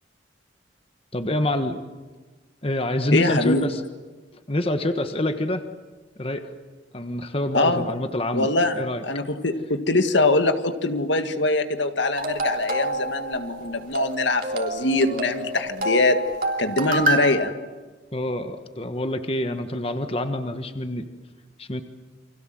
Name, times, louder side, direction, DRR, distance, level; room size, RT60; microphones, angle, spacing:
voice 1, 1.1-1.8 2.6-3.8 4.5-5.6 6.2-6.4 6.9-8.5 8.7-9.0 18.1-21.1 21.6-21.8, left 1 dB, 30° left, 8 dB, 1.4 m, -26 dB
voice 2, 3.1-3.6 7.5-7.9 8.3-16.2 16.6-17.5, left 2 dB, 70° left, 8 dB, 1.9 m, -23 dB
sound 1, 12.1-17.3, right 1 dB, 45° right, 3.4 m, -28 dB
30.0 x 25.0 x 7.7 m, 1.3 s
head